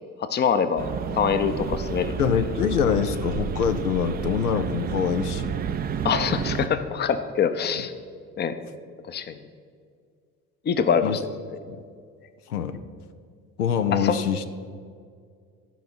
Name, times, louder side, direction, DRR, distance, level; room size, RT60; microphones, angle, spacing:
voice 1, 0.2-2.2 6.0-7.9 8.4-8.5 9.1-9.4 10.7-11.3 13.9-14.2, left 6 dB, 25° left, 10 dB, 0.6 m, -24 dB
sound 1, 0.8-6.7, right 7 dB, 25° right, 0.4 m, -30 dB
voice 2, 2.2-5.5 11.0-11.2 11.7-11.8 12.5-12.8 13.6-14.4, left 7 dB, 85° left, 10 dB, 0.5 m, -24 dB
12.5 x 5.5 x 5.7 m, 2.1 s
figure-of-eight pair, 55°, 45 cm